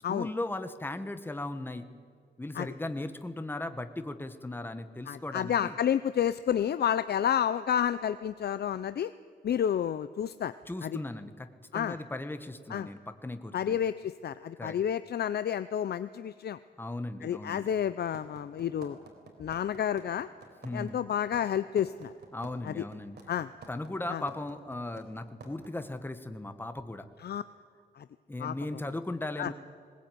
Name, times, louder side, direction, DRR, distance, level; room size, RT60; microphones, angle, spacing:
voice 1, 0.1-1.9 2.4-5.8 10.7-11.5 11.7-13.8 14.6-14.8 16.8-17.7 20.6-21.0 22.3-23.2 23.7-27.1 28.3-29.5, left 2 dB, 10° left, 9 dB, 1.2 m, -37 dB
voice 2, 5.1-9.1 9.4-10.5 10.8-11.0 11.7-12.0 12.7-12.9 13.5-16.6 17.2-19.0 19.4-20.3 20.7-22.1 22.6-22.8 23.3-23.5 24.1-24.2 27.2-27.4 28.0-28.1 28.4-28.5 29.4-29.5, left 9 dB, 70° left, 13 dB, 0.6 m, -30 dB
sound 1, 18.1-25.9, right 5 dB, 75° right, 4.0 m, -49 dB
21.0 x 19.0 x 9.2 m, 2.1 s
wide cardioid pair, 165°, 18 cm